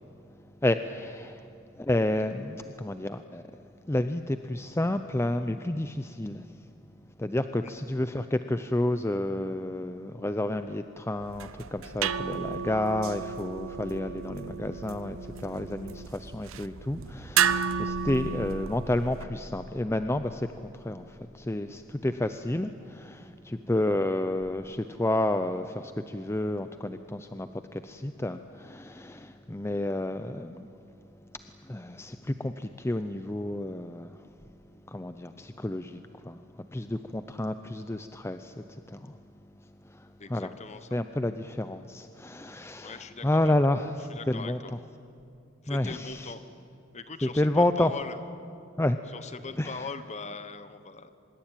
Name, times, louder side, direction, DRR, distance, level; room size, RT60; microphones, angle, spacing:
voice 1, 0.6-1.5 1.7-3.4 3.9-6.6 7.2-30.7 31.6-34.2 34.9-39.2 39.8-40.5 40.9-44.6 45.7-46.3 47.2-47.9 48.8-49.0 49.6-49.9, left 1 dB, 15° left, 9 dB, 0.6 m, -30 dB
sound 1, 11.2-19.2, right 7 dB, 75° right, 0.7 m, -32 dB
sound 2, 21.0-22.3 24.3-24.5, equal, 55° left, 2.3 m, -46 dB
voice 2, 40.2-41.0 42.8-43.5 44.1-44.7 45.6-46.4 46.9-48.2 49.1-51.1, left 4 dB, 35° left, 11 dB, 1.2 m, -41 dB
24.5 x 21.5 x 9.0 m, 2.5 s
head